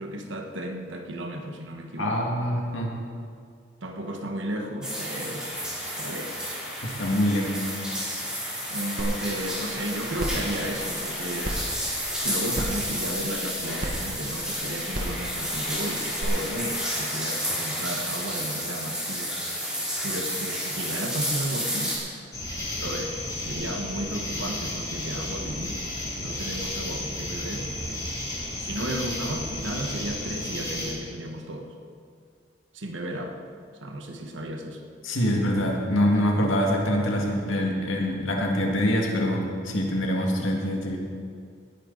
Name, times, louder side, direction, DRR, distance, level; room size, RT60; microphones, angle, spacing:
voice 1, 0.0-2.2 3.8-5.5 5.8-6.6 8.7-11.7 12.1-19.4 20.0-22.0 22.8-31.7 32.7-33.4 33.8-34.8, right 1 dB, 80° right, 3 dB, 1.4 m, -34 dB
voice 2, 2.0-2.9 6.8-7.7 35.0-41.0, equal, 90° left, 0 dB, 2.1 m, -25 dB
sound 1, 4.8-22.0, equal, 5° right, 2.9 m, -31 dB
sound 2, 9.0-9.1 9.5-9.6 10.2-10.4 11.4-11.5 12.5-12.8 13.8-13.9 14.9-15.2 16.2-16.3, right 1 dB, 45° right, 1.6 m, -30 dB
sound 3, 22.3-30.9, left 1 dB, 20° left, 2.5 m, -33 dB
18.5 x 10.0 x 4.0 m, 2.2 s
head